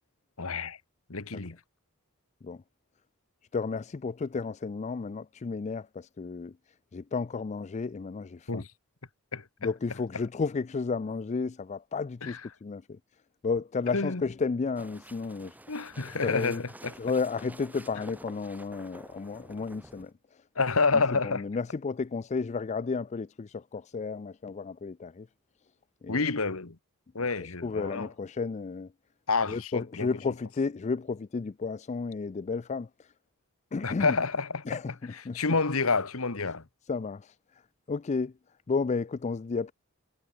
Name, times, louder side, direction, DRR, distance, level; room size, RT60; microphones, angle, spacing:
voice 1, 0.4-0.8 1.1-1.6 8.5-8.7 9.3-9.4 12.2-12.4 13.9-14.2 15.7-16.9 20.5-21.4 26.1-26.8 27.1-28.1 29.3-30.1 33.8-34.8 35.1-36.6, left 4 dB, 70° left, 1.6 m, -28 dB
voice 2, 3.5-6.6 6.9-8.6 9.6-13.0 13.4-15.6 16.1-16.6 17.0-20.4 20.9-25.3 26.0-26.3 27.6-28.9 29.5-33.1 33.7-34.2 34.7-35.4 36.9-37.6 37.9-38.3 38.7-39.7, left 4 dB, 30° left, 0.4 m, -32 dB
sound 1, 14.8-20.1, right 1 dB, 10° right, 2.7 m, -49 dB
head